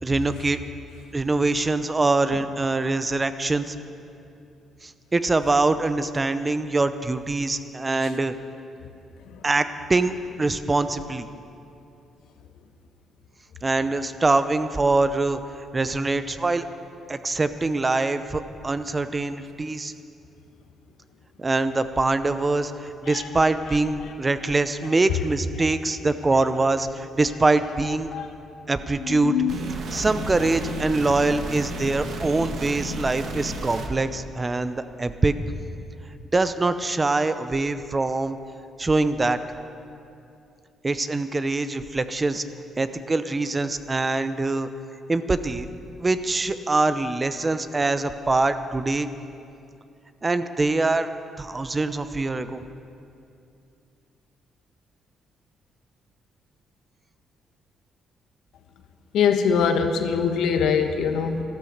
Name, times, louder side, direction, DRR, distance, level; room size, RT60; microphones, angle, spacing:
voice 1, 0.0-0.6 1.1-3.7 4.8-8.3 9.4-11.3 13.6-16.6 17.1-19.9 21.4-28.1 28.7-29.3 29.9-35.4 36.3-38.4 38.8-39.4 40.8-42.4 42.8-44.7 45.1-45.7 46.0-49.1 50.2-51.1 51.4-52.6, right 3 dB, 25° right, 11 dB, 0.7 m, -24 dB
voice 2, 29.1-29.5 59.1-61.4, left 6 dB, 80° left, 6 dB, 1.1 m, -23 dB
sound 1, 29.5-33.9, right 2 dB, 65° right, 1.5 m, -32 dB
13.0 x 12.5 x 6.6 m, 2.6 s
cardioid pair, 85°, 0 cm